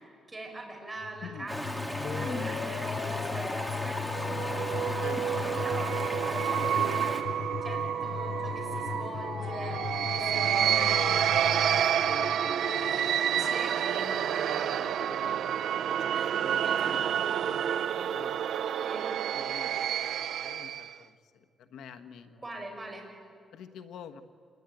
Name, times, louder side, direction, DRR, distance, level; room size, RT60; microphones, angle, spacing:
voice 1, 0.3-1.7 2.1-5.2 5.6-7.2 7.6-11.1 13.4-13.7 16.1-17.0 18.8-19.0 22.4-23.0, right 2 dB, 15° right, 0 dB, 6.5 m, -43 dB
sound 1, 1.0-12.8, left 8 dB, 55° left, 0.6 m, -37 dB
voice 2, 1.2-1.5 5.0-5.3 5.5-6.6 10.1-15.4 15.9-18.5 19.3-22.7 23.5-24.2, left 7 dB, 85° left, 7 dB, 1.3 m, -47 dB
Stream, 1.5-7.2, equal, 5° left, 2.4 m, -35 dB
sound 2, 4.1-20.9, right 9 dB, 70° right, 0.6 m, -29 dB
27.5 x 20.5 x 9.2 m, 2.3 s
cardioid pair, 145°, 0 cm